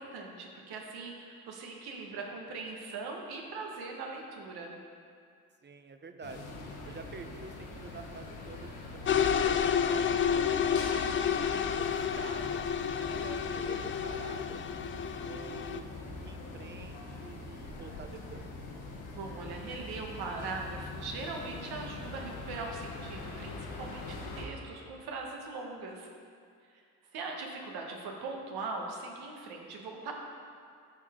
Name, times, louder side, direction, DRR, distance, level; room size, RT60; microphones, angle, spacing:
voice 1, 0.0-4.8 11.0-11.4 19.1-26.1 26.7-26.8 27.1-30.1, right 3 dB, 75° right, 1 dB, 1.4 m, -40 dB
voice 2, 5.6-6.4 6.8-10.5 11.3-12.6 12.9-14.9 15.3-18.5, right 5 dB, 30° right, 7 dB, 0.7 m, -47 dB
sound 1, 6.2-24.5, left 2 dB, 70° left, 1.5 m, -43 dB
sound 2, 9.1-15.8, left 8 dB, 35° left, 0.4 m, -30 dB
13.0 x 4.9 x 3.7 m, 2.3 s
supercardioid pair, 70°, 38 cm